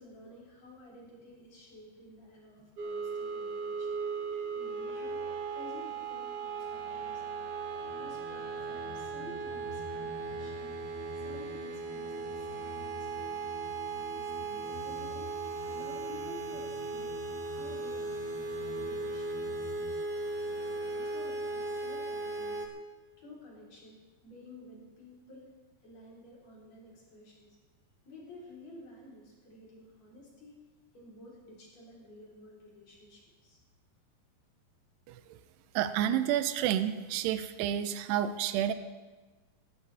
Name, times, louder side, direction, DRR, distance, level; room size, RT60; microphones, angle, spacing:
voice 1, 0.0-4.0 4.5-5.2 5.5-7.4 7.8-10.8 11.1-13.5 14.1-15.3 15.6-17.2 17.5-19.9 20.4-22.7 23.2-25.5 25.8-27.6 28.0-30.5 30.9-33.6, left 1 dB, 40° left, -4 dB, 4.8 m, -52 dB
sound 1, 2.8-22.7, right 4 dB, 65° right, 1.5 m, -37 dB
sound 2, 7.8-19.9, left 3 dB, 60° left, 5.7 m, -49 dB
voice 2, 35.1-35.4 35.8-38.7, right 10 dB, 80° right, 11 dB, 2.7 m, -30 dB
19.0 x 15.0 x 3.5 m, 1.3 s
omnidirectional pair, 5.0 m